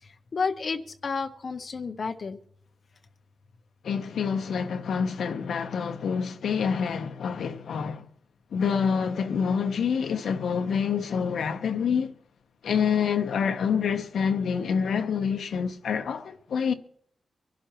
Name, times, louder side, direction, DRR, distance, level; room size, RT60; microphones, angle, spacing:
voice 1, 0.0-2.4, left 4 dB, 40° left, 0.6 m, -31 dB
voice 2, 3.8-8.0 8.5-12.1 12.6-16.7, left 6 dB, 80° left, 1.0 m, -27 dB
25.0 x 12.0 x 3.1 m
wide cardioid pair, 170°, 0 cm